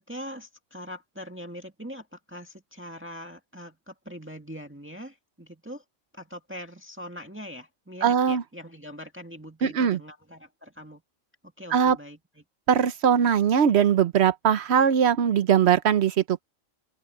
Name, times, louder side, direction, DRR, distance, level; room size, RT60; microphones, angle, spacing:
voice 1, 0.0-5.8 6.1-11.0 11.4-12.4, equal, 10° right, 1.8 m, -42 dB
voice 2, 8.0-8.4 9.6-10.0 11.7-12.0 12.7-16.4, right 8 dB, 60° right, 1.0 m, -21 dB
open air
omnidirectional pair, 1.4 m